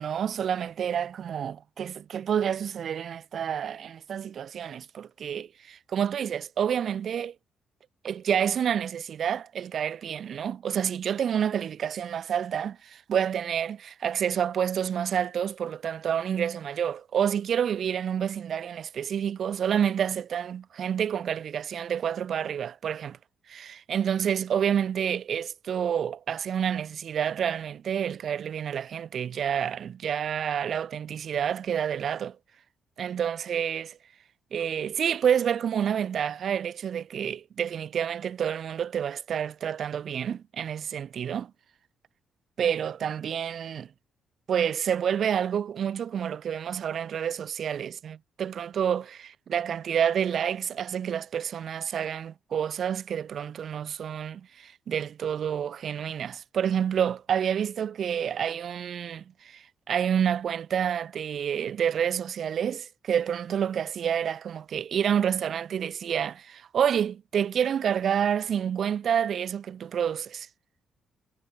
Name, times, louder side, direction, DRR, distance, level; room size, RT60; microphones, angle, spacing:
voice 1, 0.0-7.3 8.0-23.2 23.5-32.4 33.0-34.0 34.5-41.5 42.6-43.9 44.5-70.5, right 8 dB, 60° right, 1.0 m, -28 dB
cardioid pair, 90°, 0 cm